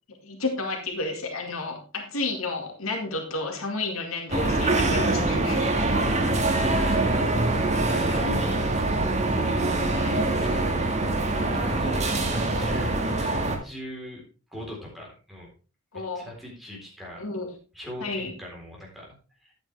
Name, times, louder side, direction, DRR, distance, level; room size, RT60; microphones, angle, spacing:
voice 1, 0.2-5.7 8.1-8.3 9.8-10.1 15.9-16.3 17.2-17.5 18.0-18.3, left 3 dB, 85° left, 3 dB, 2.1 m, -31 dB
sound 1, 4.3-13.6, right 2 dB, 35° right, 1.9 m, -24 dB
voice 2, 5.9-7.6 7.9-9.2 9.4-14.2 14.5-15.5 15.9-17.2 17.7-19.1 19.4-19.5, left 1 dB, ahead, -3 dB, 3.9 m, -40 dB
11.0 x 8.8 x 3.4 m, 0.35 s
head